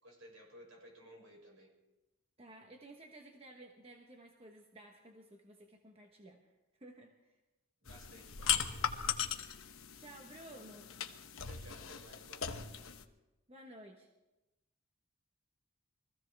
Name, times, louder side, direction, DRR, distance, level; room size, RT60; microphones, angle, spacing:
voice 1, 0.0-1.7 7.8-9.1 11.4-12.9, equal, 70° right, -1 dB, 6.3 m, -57 dB
voice 2, 2.4-6.4 6.8-7.1 9.6-10.9 13.5-14.1, right 1 dB, 25° right, 2 dB, 1.2 m, -54 dB
sound 1, 7.9-13.0, left 8 dB, 70° left, 1.0 m, -38 dB
24.0 x 15.5 x 3.5 m, 1.0 s
head